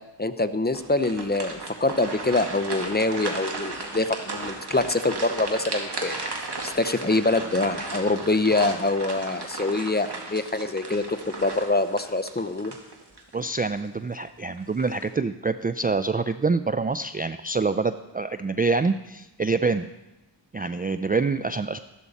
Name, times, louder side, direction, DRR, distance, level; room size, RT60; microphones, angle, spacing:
voice 1, 0.2-6.3 6.6-12.7, left 2 dB, 20° left, 10 dB, 0.8 m, -25 dB
sound 1, 0.7-13.4 13.8-14.0 14.6-15.1, right 3 dB, 60° right, 2.0 m, -35 dB
voice 2, 13.3-19.9 20.5-21.8, right 4 dB, 20° right, 11 dB, 0.3 m, -26 dB
14.0 x 12.0 x 4.2 m, 1.0 s
wide cardioid pair, 50°, 46 cm